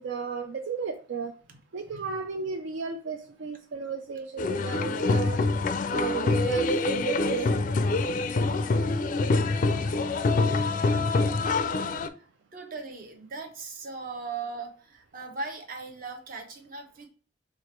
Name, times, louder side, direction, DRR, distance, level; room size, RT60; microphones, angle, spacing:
voice 1, 0.0-1.3 1.7-5.4 5.9-7.5, right 5 dB, 70° right, 5 dB, 0.4 m, -34 dB
sound 1, 4.4-12.1, left 3 dB, 40° left, 0.4 m, -25 dB
voice 2, 8.7-9.6 12.1-17.1, right 4 dB, 45° right, 3 dB, 0.9 m, -39 dB
4.8 x 2.5 x 4.3 m, 0.41 s
head